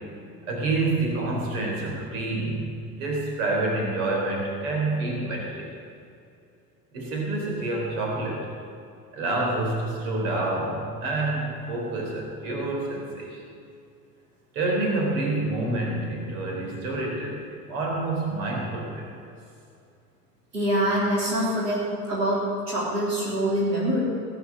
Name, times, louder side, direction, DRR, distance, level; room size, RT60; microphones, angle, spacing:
voice 1, 0.5-5.7 6.9-8.5 9.1-13.4 14.5-17.4 17.7-19.3, right 2 dB, 60° right, -1 dB, 4.0 m, -28 dB
voice 2, 20.5-24.0, right 1 dB, 75° right, -6 dB, 3.7 m, -25 dB
18.0 x 9.4 x 7.4 m, 2.5 s
figure-of-eight pair, 75°, 49 cm